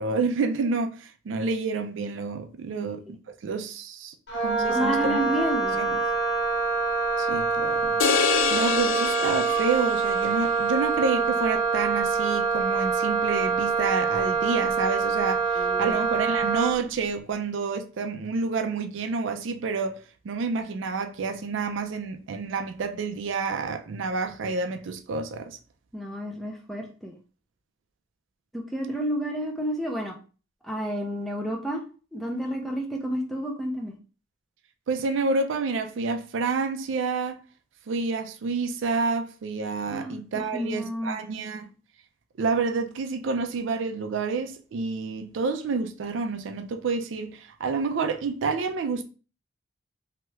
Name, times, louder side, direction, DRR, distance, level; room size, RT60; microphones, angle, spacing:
voice 1, 0.0-4.1 4.4-5.2 5.8-6.0 7.2-8.0 8.5-20.0 20.2-25.6 34.9-37.4 37.9-41.7 42.4-49.0, right 4 dB, 75° right, 0.4 m, -29 dB
voice 2, 2.7-3.1 4.7-6.0 15.6-16.0 25.9-27.1 28.5-30.2 30.6-31.8 32.1-33.9 39.9-41.2, equal, ahead, 0.5 m, -30 dB
Wind instrument woodwind instrument, 4.3-16.8, right 5 dB, 60° left, 1.2 m, -25 dB
sound 1, 8.0-10.3, left 8 dB, 75° left, 0.3 m, -26 dB
2.7 x 2.3 x 3.1 m
head